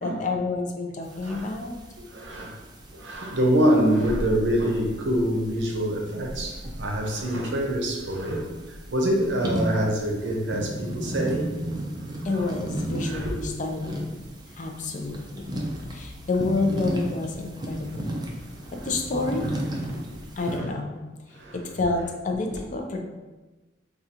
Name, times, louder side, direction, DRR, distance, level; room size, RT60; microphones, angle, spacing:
voice 1, 0.0-1.8 12.2-13.9 14.6-15.4 15.9-18.1 18.8-19.5 20.4-21.0 21.7-23.0, left 3 dB, 45° left, 3 dB, 0.5 m, -28 dB
sound 1, 1.0-20.6, equal, 25° right, 0.5 m, -35 dB
voice 2, 1.2-1.5 2.0-2.6 2.9-11.5 12.2-12.5 13.0-13.4 17.9-18.0 18.5-18.9 20.1-20.7 21.3-21.6 22.5-22.6, equal, 75° right, 1 dB, 0.7 m, -26 dB
4.8 x 2.4 x 2.8 m, 1.2 s
head